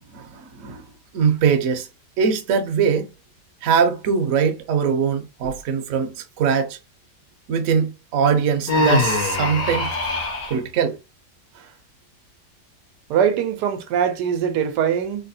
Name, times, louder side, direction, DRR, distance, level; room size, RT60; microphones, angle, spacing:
voice 1, 0.1-0.9 1.1-1.9 2.2-3.1 3.6-6.8 7.5-9.9 10.5-11.0 11.6-11.7, right 6 dB, 60° right, 0.9 m, -21 dB
Human voice, 8.7-10.5, left 2 dB, 80° left, 1.6 m, -22 dB
voice 2, 13.1-15.3, right 8 dB, 85° right, 1.2 m, -22 dB
3.8 x 2.2 x 2.6 m
omnidirectional pair, 1.8 m